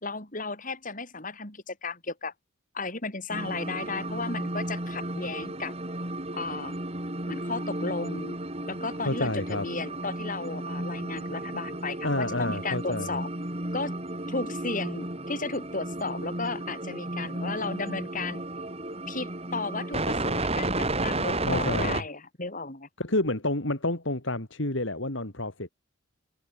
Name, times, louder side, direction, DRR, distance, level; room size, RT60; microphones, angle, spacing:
voice 1, 0.0-2.3 2.7-5.7 6.3-6.8 7.3-8.4 8.6-13.3 13.7-14.0 14.3-18.4 19.1-22.9, left 3 dB, 40° left, 7.0 m, -34 dB
sound 1, 3.3-22.0, right 2 dB, 30° right, 7.1 m, -33 dB
voice 2, 9.0-9.7 12.0-13.1 21.5-22.0 23.0-25.7, left 2 dB, 65° left, 3.5 m, -29 dB
head